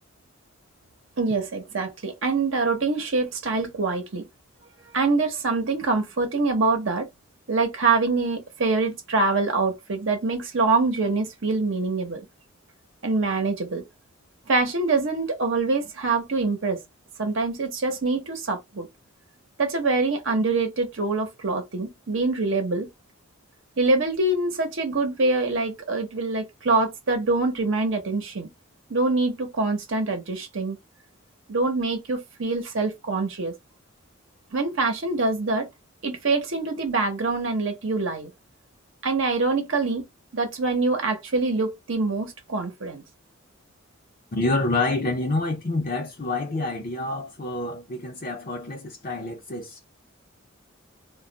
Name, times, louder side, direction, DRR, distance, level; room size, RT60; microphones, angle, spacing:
voice 1, 1.2-4.3 4.9-7.1 7.5-12.3 13.0-13.8 14.5-16.8 17.2-18.9 19.6-22.9 23.8-28.5 28.9-30.8 31.5-33.5 34.5-35.7 36.0-38.3 39.0-40.1 40.3-43.0, right 3 dB, 65° right, 0.8 m, -25 dB
voice 2, 44.3-49.8, left 2 dB, 40° left, 0.6 m, -27 dB
2.3 x 2.1 x 3.8 m
head